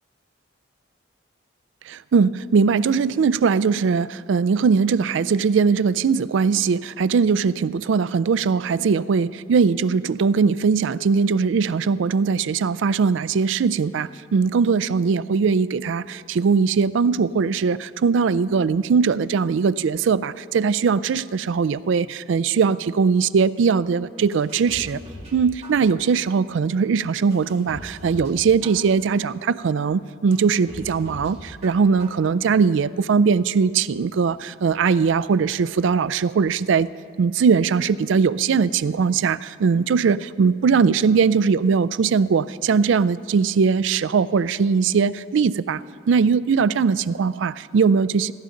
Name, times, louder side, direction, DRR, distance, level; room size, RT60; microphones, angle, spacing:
voice 1, 1.9-25.0 25.3-36.9 37.2-45.8 46.1-48.3, right 5 dB, 75° right, 17 dB, 0.4 m, -20 dB
sound 1, 24.3-25.4 25.6-26.2 26.7-26.8 27.3-28.3 28.6-29.2 29.7-29.8 30.3-31.3 31.6-32.2 32.6-32.7, equal, 30° right, 2.4 m, -40 dB
16.0 x 14.5 x 3.8 m, 2.3 s
head